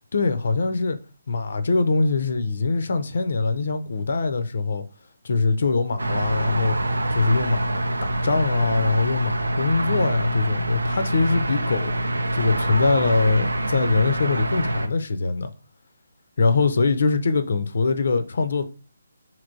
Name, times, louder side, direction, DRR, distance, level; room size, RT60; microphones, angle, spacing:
voice 1, 0.1-1.0 1.3-4.8 5.2-6.7 7.1-15.5 16.4-18.6, left 3 dB, 55° left, 0.4 m, -23 dB
sound 1, 6.0-14.9, right 1 dB, 70° right, 0.4 m, -25 dB
3.2 x 2.8 x 2.6 m
figure-of-eight pair, 145°, 0 cm